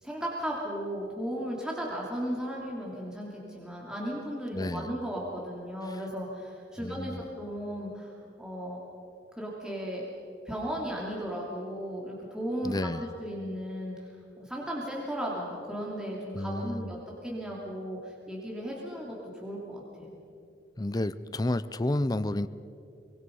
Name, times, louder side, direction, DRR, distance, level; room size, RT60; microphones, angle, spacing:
voice 1, 0.0-8.9 9.4-10.1 10.4-14.1 14.4-20.2, equal, 5° right, -4 dB, 3.0 m, -36 dB
voice 2, 4.5-4.9 5.9-6.0 6.8-7.2 12.6-13.0 16.3-16.9 20.8-22.5, left 1 dB, 20° left, 14 dB, 0.5 m, -31 dB
24.0 x 22.0 x 5.5 m, 2.6 s
head